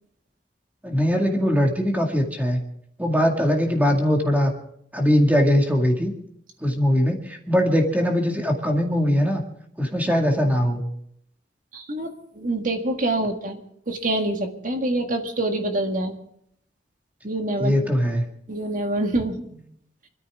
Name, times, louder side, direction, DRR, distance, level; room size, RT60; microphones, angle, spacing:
voice 1, 0.8-2.6 3.0-4.5 4.9-6.1 6.6-9.4 9.8-10.8 17.6-18.2, equal, 10° right, 2 dB, 2.0 m, -21 dB
voice 2, 11.7-13.6 13.9-16.1 17.2-17.7 18.5-19.6, right 1 dB, 45° right, 5 dB, 1.8 m, -26 dB
24.5 x 13.5 x 3.6 m, 0.71 s
head